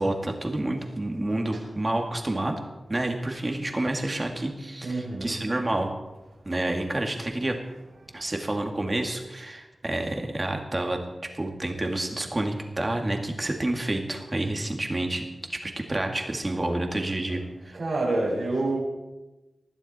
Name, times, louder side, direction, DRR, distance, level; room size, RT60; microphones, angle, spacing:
voice 1, 0.0-2.6 2.9-5.9 6.4-7.6 8.1-11.0 11.3-15.2 15.5-17.8, right 1 dB, 25° right, 3 dB, 2.2 m, -29 dB
voice 2, 4.8-5.4 16.6-16.7 17.3-17.4 17.7-18.8, right 2 dB, 75° right, -5 dB, 5.1 m, -28 dB
20.5 x 14.0 x 4.4 m, 1.1 s
wide cardioid pair, 115°, 0 cm